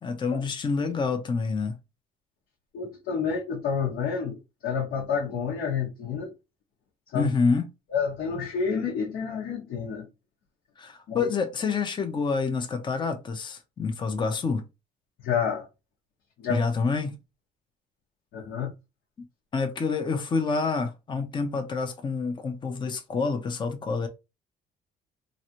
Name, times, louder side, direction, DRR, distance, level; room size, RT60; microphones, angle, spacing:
voice 1, 0.0-1.7 7.1-7.7 10.8-14.6 16.5-17.2 19.5-24.1, left 4 dB, 25° left, 0.6 m, -27 dB
voice 2, 2.7-6.3 7.1-7.3 7.9-10.1 11.1-11.3 15.2-15.7 16.4-16.6 18.3-18.7, left 6 dB, 70° left, 1.1 m, -29 dB
3.1 x 2.6 x 2.9 m
cardioid pair, 110°, 17 cm